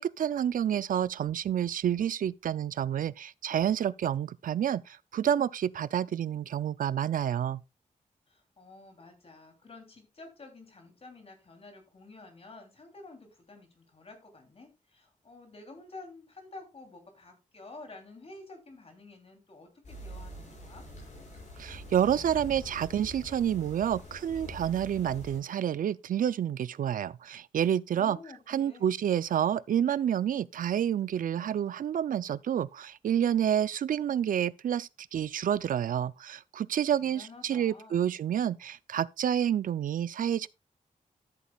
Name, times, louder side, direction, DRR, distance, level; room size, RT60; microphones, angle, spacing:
voice 1, 0.0-7.6 21.6-28.2 28.5-40.5, right 9 dB, 75° right, 0.4 m, -29 dB
voice 2, 8.3-20.9 28.0-29.0 37.0-38.2, left 3 dB, 45° left, 3.1 m, -50 dB
sound 1, 19.8-25.4, equal, 60° left, 6.1 m, -45 dB
13.5 x 8.4 x 2.3 m
wide cardioid pair, 120°, 14 cm